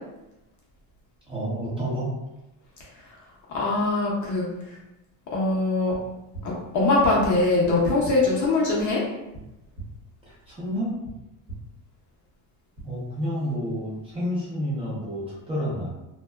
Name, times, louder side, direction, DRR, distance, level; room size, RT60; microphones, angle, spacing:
voice 1, 1.3-2.1 10.3-11.0 12.8-15.9, equal, 15° right, -9 dB, 0.7 m, -29 dB
voice 2, 3.5-4.8 5.3-6.0 6.4-9.0, left 2 dB, 45° left, -5 dB, 0.6 m, -22 dB
sound 1, 5.9-6.0 6.3-6.4 7.6-7.7 8.0-8.1 9.3-9.4 9.8-9.9 11.0-11.1 11.5-11.6 12.8-12.9, right 4 dB, 35° right, 1.1 m, -38 dB
2.6 x 2.2 x 2.2 m, 0.96 s
cardioid pair, 165°, 43 cm